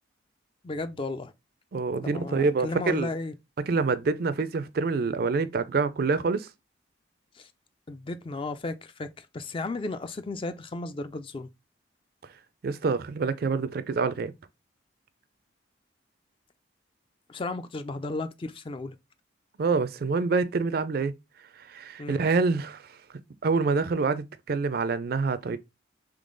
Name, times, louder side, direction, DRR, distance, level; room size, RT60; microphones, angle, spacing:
voice 1, 0.6-1.3 2.0-3.3 7.3-7.5 7.9-11.5 17.3-19.0 22.0-22.2, left 2 dB, 25° left, 0.3 m, -34 dB
voice 2, 1.7-3.1 3.7-6.5 12.6-14.3 19.6-21.1 21.5-23.0 23.4-25.6, right 4 dB, 50° right, 0.4 m, -26 dB
3.7 x 3.3 x 3.7 m
head